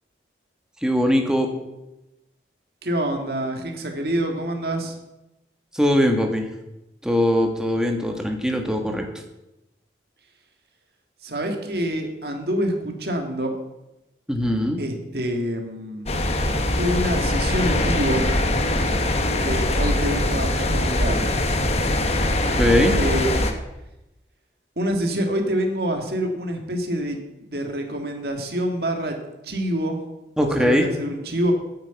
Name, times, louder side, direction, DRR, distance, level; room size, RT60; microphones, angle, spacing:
voice 1, 0.8-1.5 5.7-6.5 7.0-9.0 14.3-14.8 22.5-23.0 30.4-30.9, equal, 5° right, 3 dB, 1.4 m, -21 dB
voice 2, 2.8-4.9 11.2-13.5 14.8-16.1 16.8-18.2 19.4-21.3 23.0-23.3 24.8-29.2 29.4-30.0 30.4-31.5, right 1 dB, 60° right, 3 dB, 1.9 m, -26 dB
sound 1, 16.1-23.5, left 1 dB, 35° left, 1.1 m, -22 dB
9.7 x 7.6 x 8.1 m, 0.94 s
head